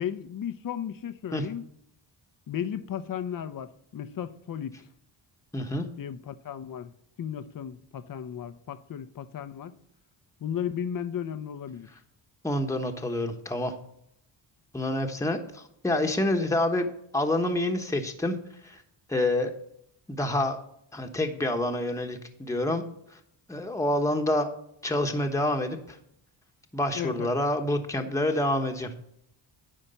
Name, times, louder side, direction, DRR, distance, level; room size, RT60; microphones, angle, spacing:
voice 1, 0.0-1.7 2.5-4.8 6.0-6.9 7.2-9.8 10.4-11.9 26.9-27.3, left 9 dB, 45° left, 0.7 m, -35 dB
voice 2, 5.5-5.8 12.4-13.7 14.7-16.9 17.1-18.4 18.6-18.8 19.1-19.5 20.1-20.6 20.9-22.8 23.5-24.5 24.8-26.0 26.7-29.0, left 1 dB, 5° left, 1.1 m, -27 dB
10.0 x 4.4 x 6.8 m
cardioid pair, 70°, 48 cm